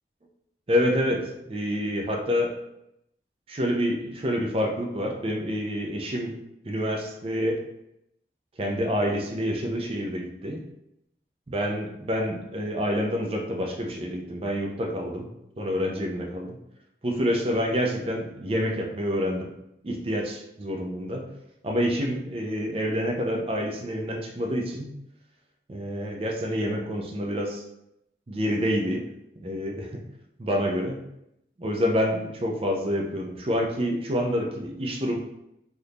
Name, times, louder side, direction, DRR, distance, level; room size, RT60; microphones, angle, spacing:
voice 1, 0.7-2.5 3.5-6.3 6.6-7.6 8.6-10.6 11.5-15.3 15.6-16.6 17.0-19.5 19.8-21.3 21.6-24.9 25.7-27.6 28.3-29.1 29.4-30.0 30.4-31.0 31.6-35.2, equal, 35° right, 1 dB, 0.4 m, -27 dB
3.5 x 2.5 x 2.8 m, 0.82 s
head